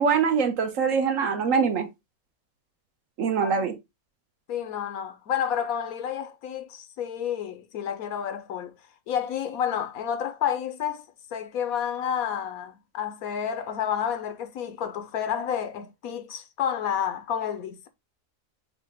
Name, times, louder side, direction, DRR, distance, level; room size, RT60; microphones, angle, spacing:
voice 1, 0.0-1.9 3.2-3.7, right 6 dB, 70° right, 1.2 m, -23 dB
voice 2, 4.5-8.7 9.1-11.0 11.3-17.9, left 8 dB, 85° left, 1.2 m, -30 dB
6.6 x 2.3 x 3.5 m
omnidirectional pair, 1.5 m